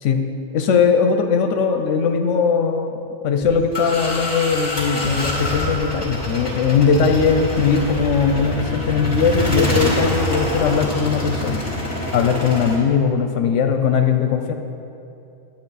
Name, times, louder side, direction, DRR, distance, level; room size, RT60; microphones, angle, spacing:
voice 1, 0.5-3.0 3.2-11.7 12.1-14.5, left 6 dB, 85° left, 5 dB, 1.0 m, -19 dB
sound 1, 3.4-12.8, left 1 dB, 20° left, 2.3 m, -26 dB
10.5 x 8.3 x 4.1 m, 2.7 s
omnidirectional pair, 1.2 m